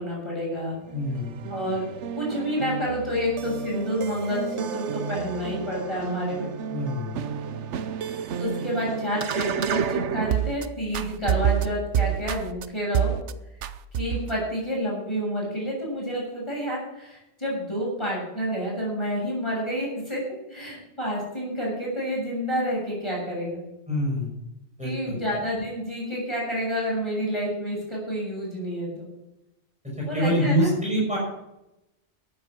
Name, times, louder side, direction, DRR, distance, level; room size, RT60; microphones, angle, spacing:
voice 1, 0.0-0.8 1.5-1.8 2.2-6.5 8.1-13.1 14.0-20.2 20.5-23.6 24.8-29.1 30.1-30.7, equal, 25° left, -4 dB, 7.3 m, -29 dB
voice 2, 0.9-1.3 6.7-7.1 23.9-24.3 24.8-25.2 30.1-31.2, equal, 5° right, -4 dB, 6.3 m, -25 dB
sound 1, 0.9-10.7 10.9-12.7 12.9-13.3 13.6-14.4, right 9 dB, 85° right, 1.1 m, -29 dB
14.0 x 10.5 x 6.2 m, 0.90 s
omnidirectional pair, 1.2 m